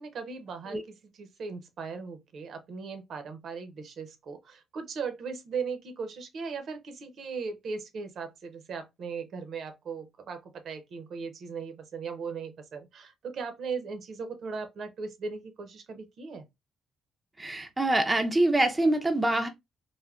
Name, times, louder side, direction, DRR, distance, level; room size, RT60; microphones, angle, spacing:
voice 1, 0.0-16.4, right 5 dB, 65° right, 0.6 m, -38 dB
voice 2, 17.4-19.5, right 1 dB, 15° right, 0.4 m, -25 dB
3.3 x 2.1 x 2.3 m
cardioid pair, 90°, 0 cm